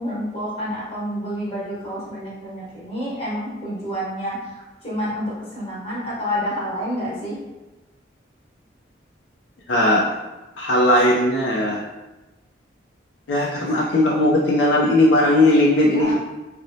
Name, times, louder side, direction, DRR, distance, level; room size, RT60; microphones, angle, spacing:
voice 1, 0.0-7.4 15.9-16.1, equal, 30° left, -9 dB, 1.1 m, -29 dB
voice 2, 9.7-10.1 10.6-11.8 13.3-16.1, left 1 dB, 80° left, -3 dB, 0.4 m, -18 dB
3.0 x 2.0 x 2.6 m, 1.1 s
head